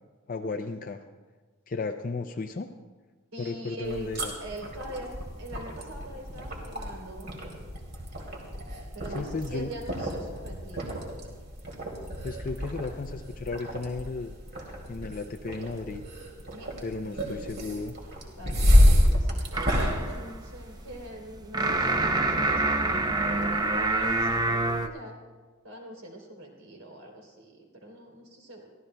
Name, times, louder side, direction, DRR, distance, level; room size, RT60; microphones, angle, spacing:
voice 1, 0.3-1.0 1.7-2.7 3.4-4.3 9.1-9.7 12.2-14.3 14.9-16.0 16.8-18.0, left 3 dB, 40° left, 5 dB, 0.5 m, -34 dB
voice 2, 3.3-4.1 4.4-7.4 8.9-10.9 16.5-17.3 18.4-25.2 25.6-28.7, right 1 dB, 75° right, 0 dB, 3.3 m, -43 dB
sound 1, 3.8-21.0, equal, 50° right, 2.4 m, -28 dB
sound 2, 19.5-24.9, right 2 dB, 20° right, 0.6 m, -27 dB
23.5 x 15.5 x 2.2 m, 1.4 s
head